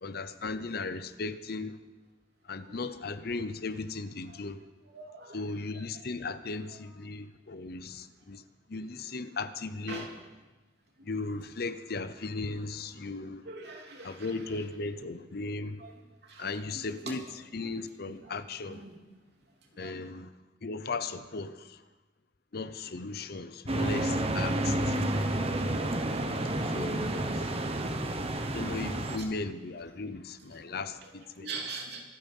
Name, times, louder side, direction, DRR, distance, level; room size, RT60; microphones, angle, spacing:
voice 1, 0.0-1.8 2.5-4.6 5.3-8.4 8.7-10.1 11.0-13.4 14.0-15.8 16.4-18.8 19.8-20.3 20.6-21.7 22.5-25.0 25.4-25.7 26.7-27.3 28.5-31.5, left 3 dB, 55° left, 0.7 m, -37 dB
voice 2, 4.9-5.3 9.9-10.1 13.5-14.1 15.8-15.9 16.4-16.5 18.8-18.9 19.8-19.9 31.4-32.0, right 4 dB, 60° right, 3.1 m, -40 dB
sound 1, 23.7-29.2, right 1 dB, 30° right, 1.1 m, -30 dB
25.5 x 9.1 x 5.5 m
head